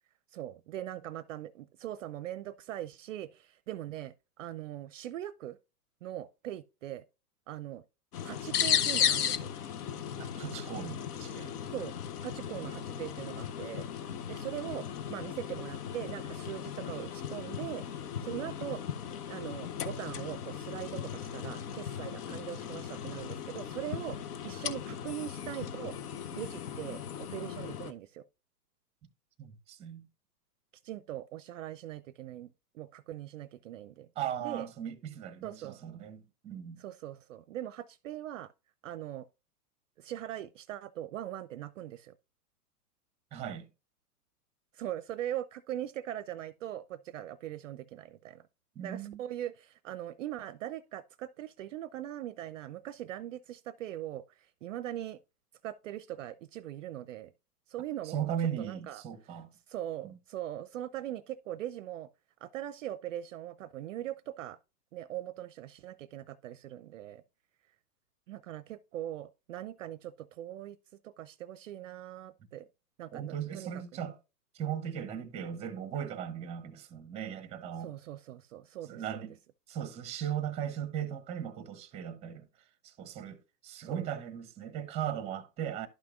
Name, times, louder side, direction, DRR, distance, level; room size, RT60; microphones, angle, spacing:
voice 1, 0.3-5.6 6.0-7.0 7.5-7.8 8.2-9.5 11.7-13.9 14.3-17.8 18.2-18.8 19.3-24.2 24.4-25.9 26.3-28.2 30.8-34.1 34.4-34.7 35.4-35.8 36.8-38.5 38.8-39.3 40.0-42.1 44.7-48.4 48.8-55.2 55.6-57.3 57.7-58.3 58.6-59.0 59.7-62.1 62.4-64.6 64.9-67.2 68.3-70.8 71.0-72.7 73.0-74.1 77.8-79.2 83.8-84.0, right 12 dB, 55° right, 0.5 m, -41 dB
sound 1, 8.1-27.9, left 8 dB, 70° left, 0.8 m, -36 dB
voice 2, 10.2-11.5 29.4-30.1 34.2-36.8 43.3-43.7 48.8-49.2 58.0-59.5 60.0-60.2 73.1-74.2 74.5-77.9 78.9-79.4 79.7-82.5 82.8-85.9, right 9 dB, 15° right, 0.6 m, -38 dB
11.5 x 5.9 x 2.3 m
hypercardioid pair, 120°, 48 cm